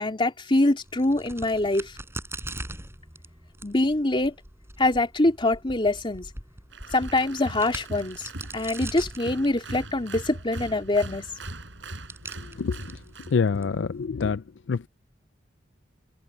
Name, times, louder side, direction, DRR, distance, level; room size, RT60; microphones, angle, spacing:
voice 1, 0.0-1.9 3.6-4.3 4.8-6.3 6.9-11.2, left 2 dB, 30° left, 2.9 m, -24 dB
Crack, 0.8-14.1, right 2 dB, 15° right, 7.3 m, -43 dB
Applause, 6.7-13.4, right 2 dB, 80° right, 5.6 m, -40 dB
voice 2, 13.3-14.4 14.7-14.9, left 5 dB, 70° left, 0.5 m, -25 dB
open air
head